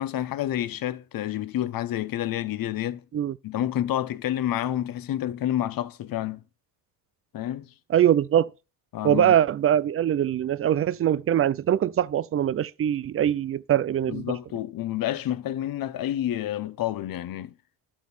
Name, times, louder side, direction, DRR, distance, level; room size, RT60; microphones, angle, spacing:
voice 1, 0.0-3.0 3.4-6.4 7.3-7.7 8.9-9.4 14.1-17.5, left 12 dB, 60° left, 1.1 m, -29 dB
voice 2, 7.9-8.5 9.0-14.3, right 10 dB, 35° right, 0.6 m, -22 dB
11.5 x 7.4 x 4.4 m
cardioid pair, 100°, 40 cm